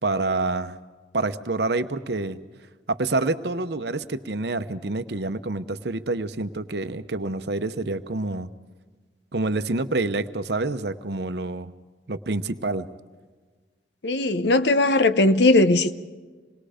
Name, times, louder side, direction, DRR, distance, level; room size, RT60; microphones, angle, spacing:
voice 1, 0.0-0.8 1.1-2.4 2.9-8.5 9.3-11.7 12.1-12.9, right 2 dB, 60° right, 0.9 m, -27 dB
voice 2, 14.0-15.9, left 2 dB, 65° left, 0.8 m, -19 dB
27.0 x 20.5 x 5.0 m
head